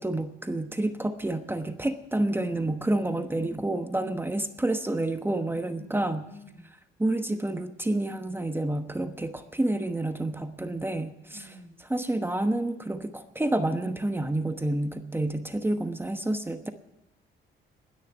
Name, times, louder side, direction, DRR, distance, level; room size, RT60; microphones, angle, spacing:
voice 1, 0.0-6.2 7.0-11.5 11.9-16.7, right 1 dB, 10° right, 8 dB, 1.1 m, -29 dB
voice 2, 2.8-3.7 4.0-4.4 5.7-6.7 11.3-11.8, left 1 dB, 85° left, 4 dB, 3.3 m, -49 dB
19.5 x 6.6 x 9.1 m, 0.90 s
cardioid pair, 90°, 20 cm